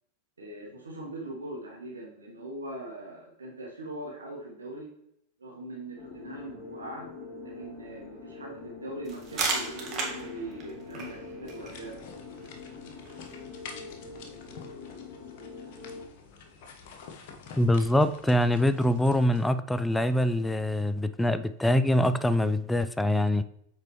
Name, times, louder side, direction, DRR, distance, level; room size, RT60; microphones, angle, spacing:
voice 1, 0.4-4.9 5.4-7.1 7.4-12.0, right 1 dB, 85° right, -2 dB, 1.4 m, -41 dB
sound 1, 6.0-16.0, left 4 dB, 30° left, 2.1 m, -44 dB
sound 2, 9.1-14.6, right 4 dB, 35° right, 1.8 m, -37 dB
sound 3, 11.4-19.5, left 5 dB, 55° left, 1.1 m, -49 dB
voice 2, 17.6-23.4, left 1 dB, 5° left, 12 dB, 0.4 m, -24 dB
7.5 x 4.7 x 3.1 m, 0.73 s
hypercardioid pair, 95°, 0 cm